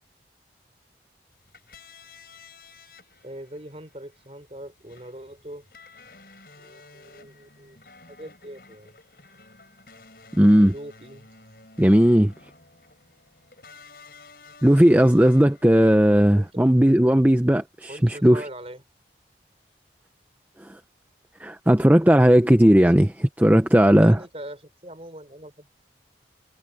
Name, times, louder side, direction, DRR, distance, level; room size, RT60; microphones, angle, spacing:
sound 1, 1.3-16.5, left 4 dB, 55° left, 7.9 m, -51 dB
voice 1, 3.2-5.7 6.6-7.8 8.1-8.9 10.6-11.7 16.3-16.5 17.9-18.8 23.7-25.7, right 1 dB, 35° right, 3.6 m, -41 dB
voice 2, 10.3-10.7 11.8-12.3 14.6-18.4 21.4-24.2, equal, 10° right, 0.6 m, -16 dB
head